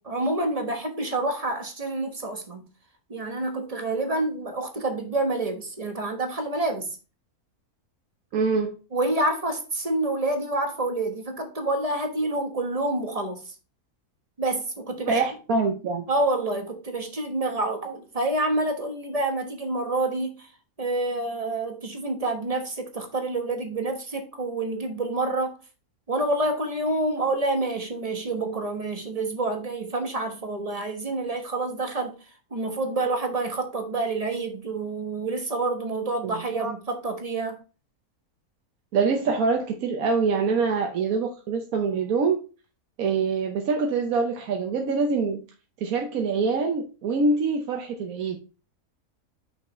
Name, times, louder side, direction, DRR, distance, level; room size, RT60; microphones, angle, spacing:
voice 1, 0.0-2.7 3.1-7.0 8.9-13.5 14.4-15.2 16.1-20.5 20.8-25.5 26.1-32.2 32.5-37.6, right 2 dB, 25° right, 1.1 m, -28 dB
voice 2, 8.3-8.7 15.1-16.0 36.2-36.7 38.9-42.4 43.0-45.4 45.8-48.4, right 4 dB, 70° right, 1.3 m, -25 dB
6.3 x 5.6 x 3.1 m
omnidirectional pair, 1.6 m